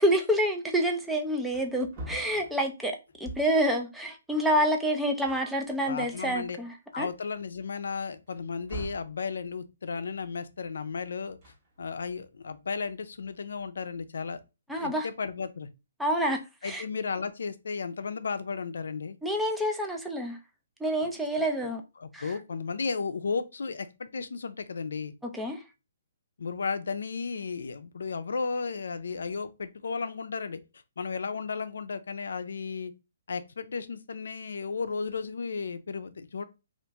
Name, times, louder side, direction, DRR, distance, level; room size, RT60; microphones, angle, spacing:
voice 1, 0.0-7.1 14.7-15.1 16.0-16.8 19.2-20.4 20.8-21.8 22.1-22.4 25.2-25.6, equal, ahead, 0.4 m, -28 dB
Wood, 1.0-1.1 1.4-3.7 4.8-4.9 5.2-6.4 6.9-7.0 8.3-9.2 11.2-12.1, right 1 dB, 30° right, 1.0 m, -44 dB
voice 2, 5.8-6.6 6.9-11.4 11.8-14.4 14.8-15.7 16.6-19.2 21.0-21.1 22.0-25.1 26.4-30.6 31.0-32.9 33.3-36.4, left 5 dB, 80° left, 0.4 m, -34 dB
2.9 x 2.5 x 3.4 m
hypercardioid pair, 165°, 0 cm